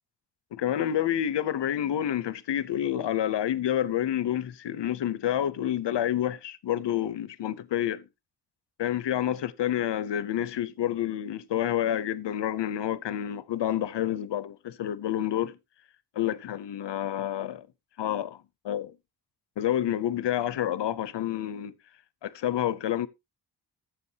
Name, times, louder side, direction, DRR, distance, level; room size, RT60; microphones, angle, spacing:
voice 1, 0.5-8.1 8.8-15.6 16.2-17.7 18.0-18.9 19.6-21.7 22.2-23.1, left 11 dB, 90° left, 0.7 m, -29 dB
14.0 x 7.3 x 2.8 m
wide cardioid pair, 130°, 41 cm